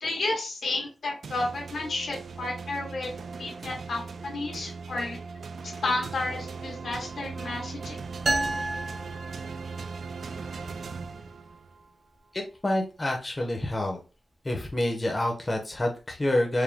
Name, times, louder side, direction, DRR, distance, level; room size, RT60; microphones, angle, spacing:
voice 1, 0.0-3.1 3.4-5.2 5.6-8.0, left 2 dB, 85° left, -1 dB, 1.6 m, -32 dB
sound 1, 1.2-11.8, right 4 dB, 75° right, 0.4 m, -39 dB
sound 2, 8.3-10.0, right 2 dB, 40° right, 0.8 m, -30 dB
voice 2, 12.3-14.0 14.4-16.6, left 1 dB, 20° left, 1 dB, 0.7 m, -28 dB
4.9 x 2.1 x 3.5 m, 0.32 s
wide cardioid pair, 165°, 0 cm